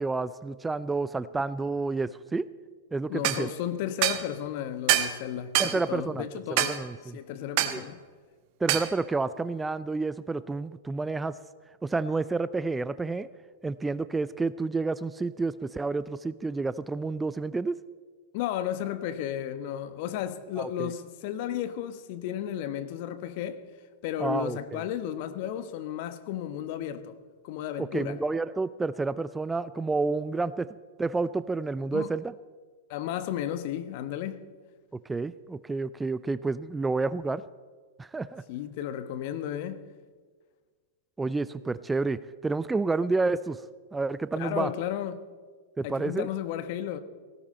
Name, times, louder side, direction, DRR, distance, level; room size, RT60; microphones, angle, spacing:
voice 1, 0.0-2.5 2.9-3.5 5.6-7.2 7.7-7.8 8.6-11.4 11.8-13.3 13.6-17.8 20.6-20.9 24.2-24.8 27.8-32.3 35.1-37.4 38.0-38.4 41.2-43.6 43.9-44.7 45.8-46.3, right 3 dB, 10° right, 0.4 m, -30 dB
voice 2, 3.1-6.8 7.1-8.0 18.3-23.6 24.0-27.1 27.4-28.2 31.9-32.1 32.9-34.4 38.5-39.8 44.4-45.2 45.8-47.0, left 10 dB, 55° left, 1.2 m, -33 dB
sound 1, 3.2-3.4 4.0-4.2 4.9-5.2 5.6-5.8 6.6-6.8 7.6-7.8 8.7-8.9, right 13 dB, 50° right, 1.3 m, -24 dB
18.5 x 16.5 x 4.4 m
hypercardioid pair, 100°, 0 cm